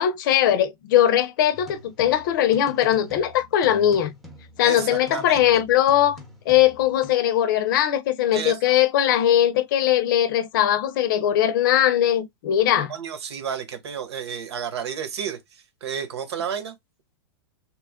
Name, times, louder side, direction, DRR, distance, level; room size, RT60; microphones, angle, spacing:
voice 1, 0.0-4.1 4.6-6.2 6.5-12.9, left 11 dB, 50° left, 0.6 m, -20 dB
sound 1, 1.5-7.1, left 2 dB, ahead, 0.6 m, -45 dB
voice 2, 4.6-5.5 8.3-8.7 12.9-16.8, right 7 dB, 90° right, 1.1 m, -32 dB
3.1 x 2.3 x 3.5 m
supercardioid pair, 160°, 14 cm